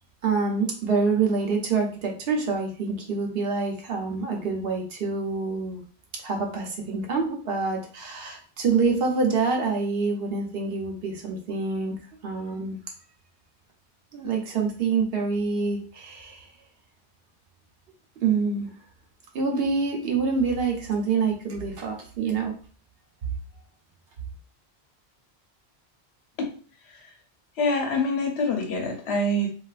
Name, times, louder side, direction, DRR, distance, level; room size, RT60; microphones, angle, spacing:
voice 1, 0.2-5.8 6.2-11.9 12.2-12.8 14.1-16.5 18.2-18.7 19.3-22.5, right 4 dB, 65° right, 2 dB, 0.9 m, -26 dB
voice 2, 27.6-29.5, left 1 dB, 85° left, 3 dB, 1.0 m, -25 dB
3.2 x 2.4 x 2.4 m, 0.40 s
omnidirectional pair, 1.1 m